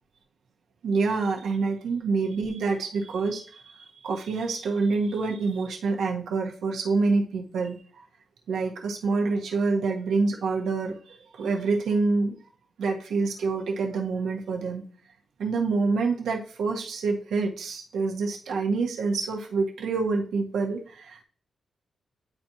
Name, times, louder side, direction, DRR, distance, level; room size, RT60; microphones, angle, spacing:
voice 1, 0.8-7.8 8.5-12.3 12.8-14.8 15.4-21.2, right 4 dB, 90° right, 0 dB, 1.5 m, -27 dB
10.5 x 4.3 x 3.0 m, 0.42 s
cardioid pair, 110°, 0 cm